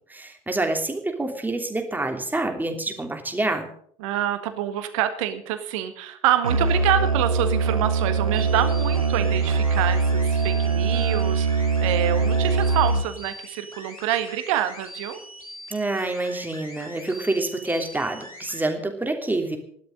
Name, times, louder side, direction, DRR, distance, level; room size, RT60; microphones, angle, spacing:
voice 1, 0.1-3.7 15.7-19.6, right 2 dB, 10° right, 4 dB, 3.1 m, -27 dB
voice 2, 4.0-15.2, right 11 dB, 65° right, 10 dB, 1.7 m, -26 dB
Musical instrument, 6.4-13.2, right 4 dB, 90° right, 0.6 m, -22 dB
sound 1, 8.3-18.6, left 1 dB, 85° left, 2.6 m, -42 dB
15.0 x 12.0 x 6.6 m, 0.62 s
figure-of-eight pair, 55°, 18 cm